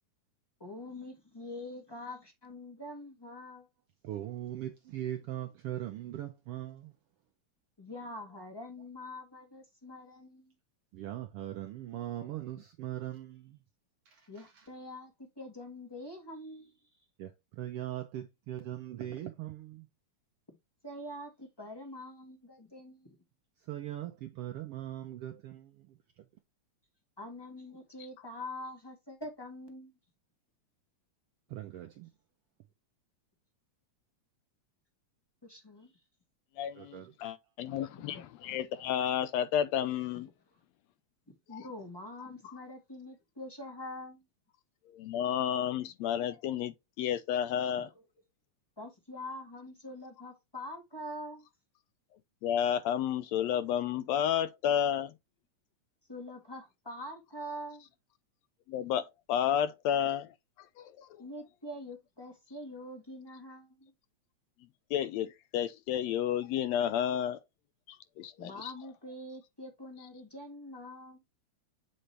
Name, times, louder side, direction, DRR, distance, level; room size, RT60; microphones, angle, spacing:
voice 1, 0.6-3.7 7.8-10.5 14.3-16.8 20.5-20.6 20.8-23.2 27.2-29.9 35.4-35.9 37.7-38.2 41.3-44.2 48.8-51.4 56.1-57.9 61.2-63.9 68.4-71.2, left 1 dB, 20° left, 0.6 m, -45 dB
voice 2, 4.1-6.8 11.0-13.4 17.2-17.3 17.6-19.7 23.7-25.6 31.5-31.9 36.8-37.0, right 13 dB, 80° right, 1.3 m, -39 dB
voice 3, 36.6-40.3 41.5-41.6 45.0-47.9 52.4-55.1 58.7-60.3 60.8-61.1 64.9-67.4 68.2-68.7, left 9 dB, 80° left, 1.7 m, -31 dB
7.7 x 4.0 x 3.2 m
omnidirectional pair, 3.3 m